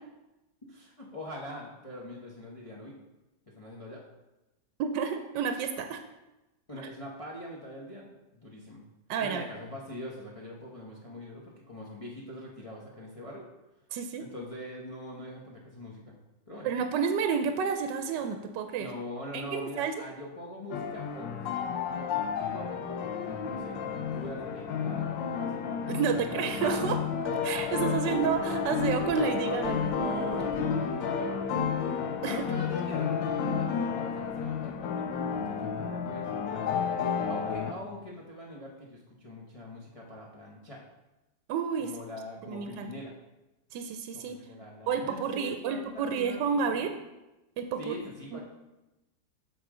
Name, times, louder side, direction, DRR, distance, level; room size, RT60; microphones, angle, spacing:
voice 1, 0.7-3.0 3.5-4.0 6.7-8.9 9.2-13.5 14.2-16.2 16.5-16.7 18.8-21.3 21.6-25.7 26.1-26.8 30.5-31.4 32.2-40.9 41.8-43.1 44.1-46.9 47.8-48.4, left 1 dB, 30° left, -3 dB, 0.7 m, -43 dB
voice 2, 4.8-6.0 9.1-9.4 13.9-14.2 16.6-18.9 19.3-19.9 25.9-27.0 27.4-30.5 32.2-32.4 41.5-41.9 42.5-42.9 43.7-44.3 44.9-46.9 47.6-48.0 48.3-48.4, right 6 dB, 80° right, 7 dB, 1.2 m, -30 dB
sound 1, 20.7-37.7, left 6 dB, 90° left, 1.4 m, -31 dB
8.1 x 5.9 x 3.7 m, 1.0 s
omnidirectional pair, 1.9 m